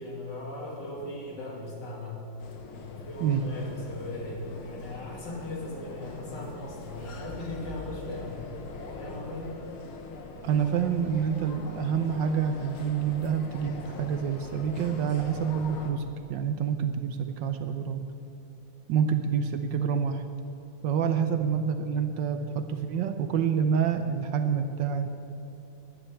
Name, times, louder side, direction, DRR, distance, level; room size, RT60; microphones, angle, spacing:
voice 1, 0.0-2.2 2.9-8.4 8.8-9.5, left 1 dB, 55° left, -3 dB, 3.2 m, -38 dB
sound 1, 2.4-15.9, left 4 dB, 85° left, 2.0 m, -43 dB
voice 2, 10.4-16.0 16.3-18.0 18.9-20.2 20.8-25.1, right 7 dB, 70° right, 8 dB, 1.3 m, -27 dB
11.0 x 10.0 x 8.7 m, 3.0 s
omnidirectional pair, 2.2 m